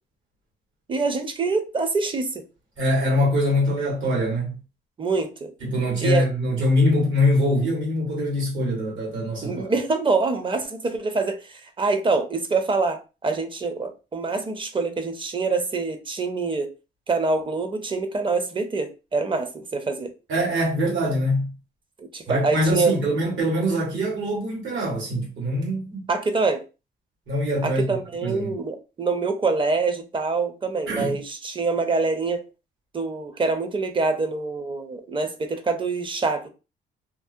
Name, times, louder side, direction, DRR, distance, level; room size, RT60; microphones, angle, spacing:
voice 1, 0.9-2.4 5.0-5.5 6.0-6.3 9.4-16.7 17.1-20.1 22.0-23.0 26.1-26.6 27.6-32.4 32.9-36.5, right 3 dB, 25° right, 0.5 m, -25 dB
voice 2, 2.8-4.6 5.6-9.7 20.3-21.5 22.3-26.1 27.3-27.8 28.2-28.5 30.9-31.2, left 1 dB, 75° right, 1.5 m, -23 dB
2.6 x 2.1 x 2.5 m
cardioid pair, 90°, 20 cm